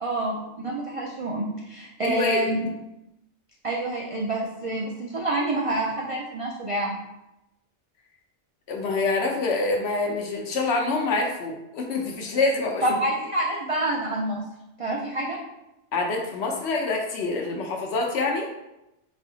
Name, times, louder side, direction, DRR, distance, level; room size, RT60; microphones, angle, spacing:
voice 1, 0.0-2.7 3.6-7.0 12.8-14.4 14.8-15.4, right 1 dB, 60° right, -3 dB, 0.3 m, -27 dB
voice 2, 2.0-2.5 8.7-12.8 15.9-18.5, left 3 dB, 70° left, 1 dB, 0.9 m, -26 dB
4.0 x 2.8 x 2.7 m, 0.91 s
omnidirectional pair, 1.2 m